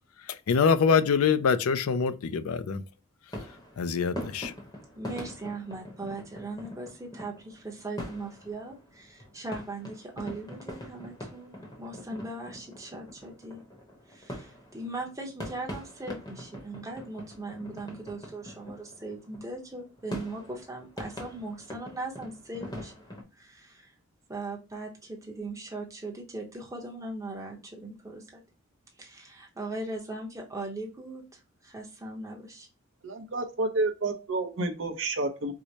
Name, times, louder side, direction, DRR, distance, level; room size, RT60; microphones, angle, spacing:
voice 1, 0.3-2.8 3.8-4.5, left 6 dB, 80° left, 0.4 m, -24 dB
sound 1, 3.3-23.2, left 1 dB, 20° left, 0.8 m, -43 dB
voice 2, 5.0-13.6 14.1-22.9 23.4-23.9 24.3-28.4 29.0-32.7, right 2 dB, 15° right, 0.8 m, -39 dB
voice 3, 33.0-35.5, right 2 dB, 55° right, 0.7 m, -30 dB
4.6 x 2.1 x 2.7 m
head